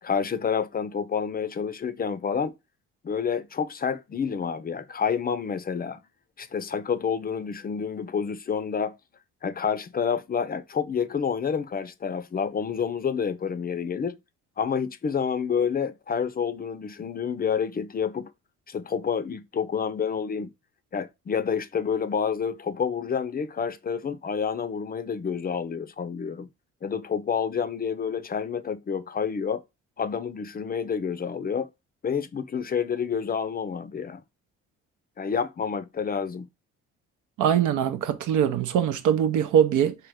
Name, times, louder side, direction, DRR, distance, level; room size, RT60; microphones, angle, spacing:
voice 1, 0.0-2.5 3.0-6.0 6.4-9.0 9.4-14.2 14.6-18.3 18.7-20.5 20.9-26.5 26.8-29.6 30.0-31.7 32.0-34.2 35.2-36.5, left 6 dB, 30° left, 0.4 m, -28 dB
voice 2, 37.4-40.0, right 9 dB, 80° right, 0.7 m, -22 dB
3.5 x 2.9 x 3.4 m
cardioid pair, 90°, 30 cm